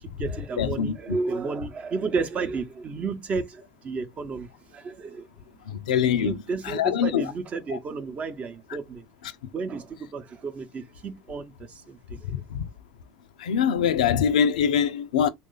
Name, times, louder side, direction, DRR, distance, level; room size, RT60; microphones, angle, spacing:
voice 1, 0.0-5.3 6.2-9.1 9.5-12.4, right 4 dB, 35° right, 0.7 m, -32 dB
voice 2, 0.6-1.2 5.7-7.3 7.7-7.8 12.5-12.7 13.4-15.3, left 8 dB, 90° left, 0.4 m, -24 dB
3.2 x 2.4 x 3.8 m
supercardioid pair, 95°, 4 cm